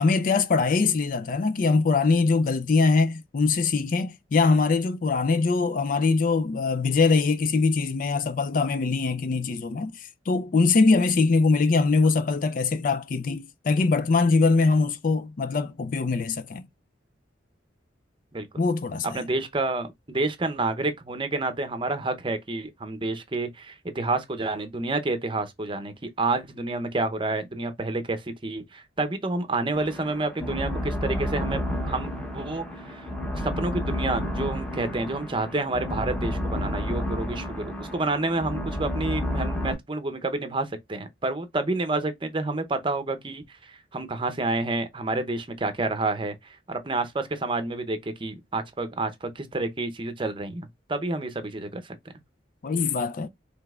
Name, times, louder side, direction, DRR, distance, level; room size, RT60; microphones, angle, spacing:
voice 1, 0.0-16.7 18.6-19.2 52.6-53.3, left 4 dB, 45° left, 0.4 m, -22 dB
voice 2, 18.3-18.6 19.1-33.1 33.3-51.9, right 2 dB, 25° right, 0.7 m, -29 dB
sound 1, 29.7-39.7, left 1 dB, 5° left, 0.8 m, -31 dB
5.1 x 3.3 x 2.4 m
head